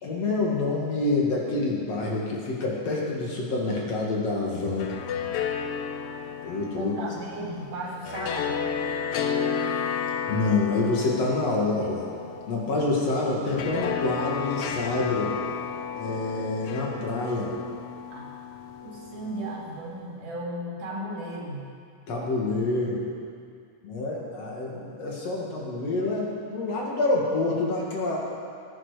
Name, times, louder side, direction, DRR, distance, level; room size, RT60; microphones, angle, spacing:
voice 1, 0.0-4.9 6.4-6.9 10.3-12.1 12.5-15.4 15.9-17.6 22.1-23.0 23.8-28.2, left 2 dB, 55° left, -3 dB, 2.9 m, -27 dB
sound 1, 4.6-19.8, left 7 dB, 80° left, 1.3 m, -32 dB
voice 2, 6.8-8.5 18.1-18.3 18.8-21.7, right 1 dB, 80° right, -3 dB, 3.8 m, -35 dB
18.5 x 10.0 x 4.9 m, 2.3 s
omnidirectional pair, 3.6 m